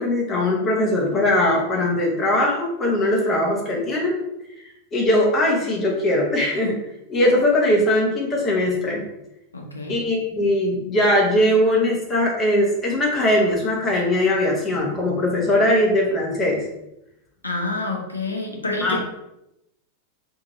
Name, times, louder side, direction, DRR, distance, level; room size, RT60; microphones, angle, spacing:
voice 1, 0.0-4.2 4.6-6.8 7.1-9.0 9.9-16.6 18.8-19.0, left 1 dB, 25° left, -2 dB, 0.7 m, -20 dB
voice 2, 9.5-10.0 17.4-19.0, left 2 dB, 80° left, 1 dB, 0.7 m, -28 dB
2.7 x 2.5 x 4.0 m, 0.85 s
figure-of-eight pair, 90°, 0 cm